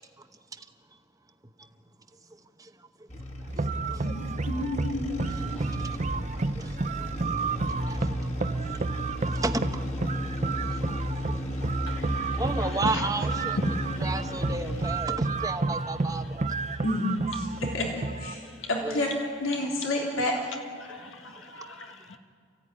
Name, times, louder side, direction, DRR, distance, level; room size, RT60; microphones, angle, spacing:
sound 1, 3.1-15.2, equal, 35° left, 2.2 m, -35 dB
sound 2, 3.5-18.3, right 3 dB, 35° right, 0.6 m, -31 dB
voice 1, 4.0-5.4 16.8-17.9 18.2-19.1 19.4-20.4, left 1 dB, 90° left, -1 dB, 3.5 m, -30 dB
voice 2, 6.1-7.3 7.9-8.3 8.8-9.0 9.3-10.1 10.4-11.4 12.3-13.6 14.0-16.4 18.8-19.1, right 2 dB, 15° right, 7 dB, 1.0 m, -34 dB
voice 3, 11.9-13.3 13.6-14.1 14.4-14.5 16.7-16.8 17.5-17.6 18.3-18.7 20.8-22.2, left 2 dB, 70° left, 3 dB, 1.8 m, -38 dB
29.0 x 15.5 x 9.8 m, 2.2 s
head